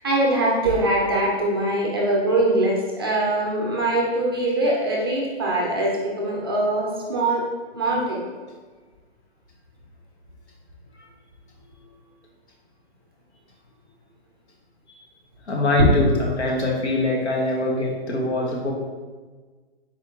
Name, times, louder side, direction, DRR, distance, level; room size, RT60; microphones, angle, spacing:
voice 1, 0.0-7.4 7.7-8.2 15.8-15.9, right 1 dB, 25° right, -3 dB, 0.4 m, -22 dB
voice 2, 15.5-18.7, left 2 dB, 85° left, -1 dB, 1.0 m, -23 dB
4.2 x 3.0 x 3.5 m, 1.4 s
hypercardioid pair, 155°, 33 cm